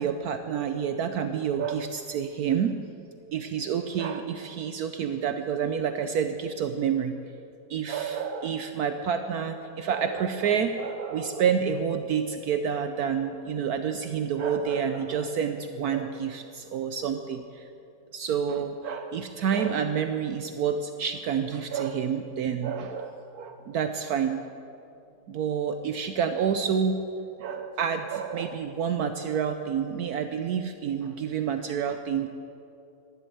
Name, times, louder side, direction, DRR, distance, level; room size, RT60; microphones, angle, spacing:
voice 1, 0.0-2.8 3.3-7.1 7.7-17.7 18.1-24.4 25.3-27.0 27.4-32.3, right 7 dB, 70° right, 8 dB, 1.1 m, -28 dB
14.5 x 11.0 x 7.9 m, 2.7 s
omnidirectional pair, 1.9 m